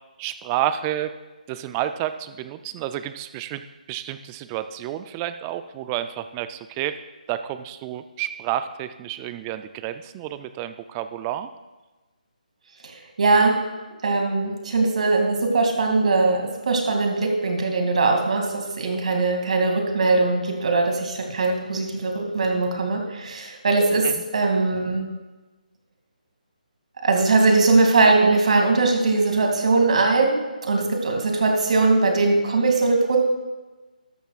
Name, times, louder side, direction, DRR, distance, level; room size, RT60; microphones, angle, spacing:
voice 1, 0.2-1.1 1.5-3.6 3.9-7.0 7.3-11.5 24.0-24.1, right 12 dB, 20° right, 11 dB, 0.4 m, -30 dB
voice 2, 13.2-13.5 14.0-25.1 27.0-30.4 30.6-33.2, right 3 dB, 55° right, 3 dB, 2.4 m, -20 dB
13.0 x 12.0 x 2.4 m, 1.2 s
figure-of-eight pair, 150°, 5 cm